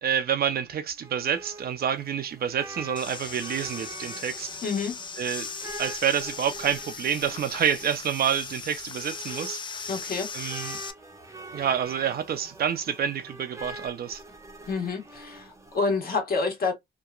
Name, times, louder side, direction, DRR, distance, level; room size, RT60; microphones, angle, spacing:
voice 1, 0.0-4.5 5.2-5.5 5.8-9.6 10.3-10.8 11.5-14.2, right 8 dB, 50° right, 0.5 m, -28 dB
sound 1, 0.7-16.0, right 2 dB, 15° right, 0.7 m, -45 dB
sound 2, 3.0-10.9, left 5 dB, 25° left, 0.4 m, -38 dB
voice 2, 4.6-5.0 9.9-10.3 14.7-16.7, left 4 dB, 50° left, 1.4 m, -28 dB
2.9 x 2.2 x 2.3 m
cardioid pair, 90°, 20 cm